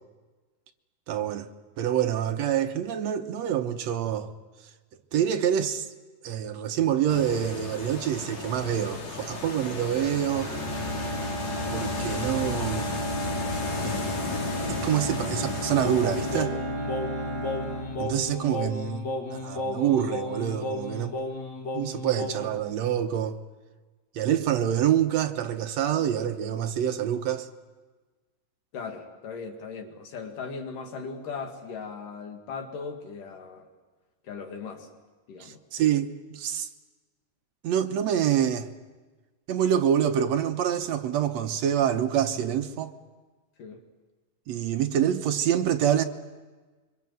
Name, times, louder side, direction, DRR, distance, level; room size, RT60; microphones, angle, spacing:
voice 1, 1.1-1.5 1.8-4.3 5.1-5.9 6.2-10.5 11.7-12.9 13.8-14.0 14.7-16.6 18.0-21.2 21.7-23.4 24.1-27.5 35.4-36.7 37.6-38.7 39.5-42.9 44.5-46.0, right 9 dB, 65° right, 1.9 m, -26 dB
starker Wellengang, 7.1-16.4, left 4 dB, 55° left, 3.7 m, -34 dB
Bowed string instrument, 10.3-18.5, right 1 dB, 45° right, 5.8 m, -33 dB
Singing, 15.8-22.6, left 2 dB, 35° left, 2.3 m, -34 dB
voice 2, 28.7-33.7 34.3-34.9 35.3-35.6 43.6-43.8, left 5 dB, 75° left, 3.7 m, -38 dB
25.0 x 24.0 x 7.8 m
omnidirectional pair, 3.9 m